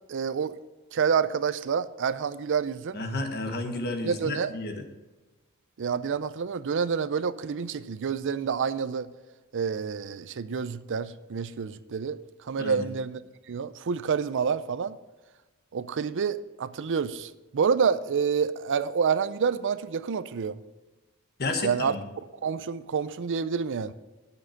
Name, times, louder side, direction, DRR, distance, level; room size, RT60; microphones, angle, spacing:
voice 1, 0.1-0.6 0.9-3.0 4.0-4.5 5.8-9.1 9.5-13.2 13.5-15.0 15.7-20.6 21.6-22.0 22.4-23.9, right 6 dB, 55° right, 14 dB, 0.5 m, -28 dB
voice 2, 2.9-4.8 12.6-12.9 21.4-22.0, left 2 dB, 45° left, 6 dB, 1.4 m, -32 dB
9.0 x 7.2 x 5.7 m, 1.2 s
head